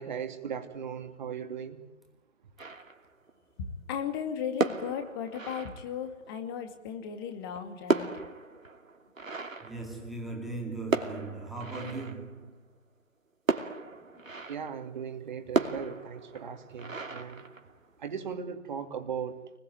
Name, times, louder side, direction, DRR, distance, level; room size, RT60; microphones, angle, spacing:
voice 1, 0.0-1.8 14.5-17.4 18.0-19.4, right 7 dB, 35° right, 2.7 m, -38 dB
sound 1, 2.6-3.3 4.4-6.3 7.3-10.5 10.9-12.5 13.5-14.9 15.5-18.1, right 3 dB, 80° right, 2.9 m, -34 dB
voice 2, 3.6-8.1, left 8 dB, 15° left, 2.2 m, -36 dB
voice 3, 9.6-12.5, right 3 dB, ahead, 2.3 m, -38 dB
29.5 x 21.0 x 9.4 m
figure-of-eight pair, 155°, 39 cm